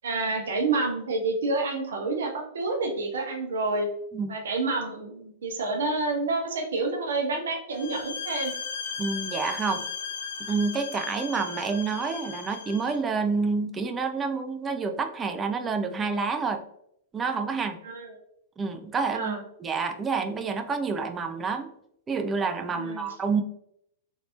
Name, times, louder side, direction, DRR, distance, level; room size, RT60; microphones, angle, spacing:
voice 1, 0.0-3.9 4.3-8.5 17.8-18.2 19.1-19.4 22.8-23.1, right 3 dB, 65° right, 2 dB, 0.6 m, -28 dB
sound 1, 7.7-13.0, left 6 dB, 65° left, 0.5 m, -36 dB
voice 2, 9.0-9.8 10.4-16.6 17.1-17.8 18.6-21.7 22.1-23.4, right 4 dB, 20° right, 7 dB, 0.3 m, -28 dB
3.2 x 2.7 x 2.4 m, 0.72 s
figure-of-eight pair, 100°, 0 cm